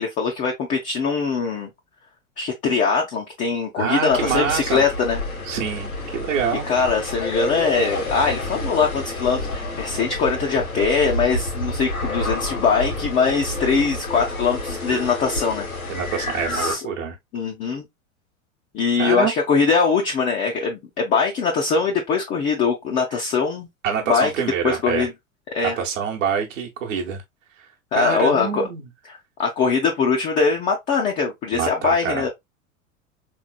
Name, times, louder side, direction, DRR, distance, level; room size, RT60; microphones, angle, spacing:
voice 1, 0.0-1.7 2.4-5.2 6.6-15.7 16.5-16.9 17.3-17.9 18.7-23.7 24.1-24.3 24.6-25.1 25.5-25.8 27.9-28.7 29.1-32.3, left 5 dB, 20° left, 0.4 m, -22 dB
voice 2, 3.8-4.8 5.4-6.7 15.9-17.2 19.0-19.3 23.1-23.2 23.8-25.1 25.8-27.2 27.6-28.9 31.5-32.2, right 7 dB, 65° right, 1.0 m, -26 dB
sound 1, 4.1-16.8, left 1 dB, 85° left, 1.2 m, -29 dB
3.8 x 3.0 x 2.2 m
figure-of-eight pair, 90°, 41 cm